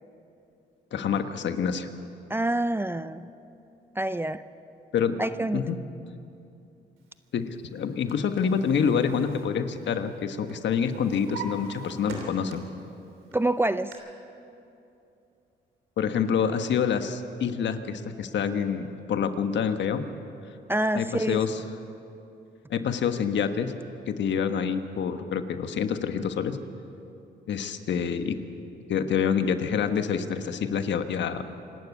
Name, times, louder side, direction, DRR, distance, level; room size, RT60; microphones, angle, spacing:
voice 1, 0.9-1.9 4.9-5.2 5.5-5.8 7.3-12.6 16.0-20.0 20.9-21.6 22.7-23.7 24.1-26.6 27.5-28.4 28.9-31.4, left 7 dB, 65° left, 8 dB, 1.4 m, -27 dB
voice 2, 2.3-3.3 4.0-4.4 5.2-5.6 13.3-13.9 20.7-21.4, right 1 dB, 10° right, 13 dB, 0.5 m, -26 dB
Drawer open or close, 7.7-10.2 10.5-12.8 13.3-13.9, right 4 dB, 80° right, 3.4 m, -42 dB
26.5 x 12.0 x 8.4 m, 2.7 s
cardioid pair, 90°, 20 cm